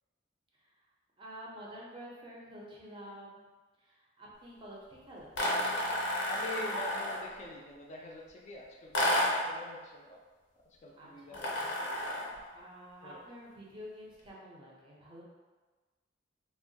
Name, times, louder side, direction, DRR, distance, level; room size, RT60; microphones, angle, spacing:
voice 1, 1.2-3.4 3.8-5.4 11.0-11.4 12.5-15.2, equal, 25° right, -4 dB, 0.5 m, -49 dB
sound 1, 5.3-7.3 8.9-9.5 11.3-12.4, left 1 dB, 90° left, 0.6 m, -31 dB
voice 2, 6.3-10.2 10.7-12.2 13.0-13.2, left 2 dB, 35° left, -2 dB, 0.3 m, -45 dB
2.9 x 2.1 x 2.6 m, 1.3 s
head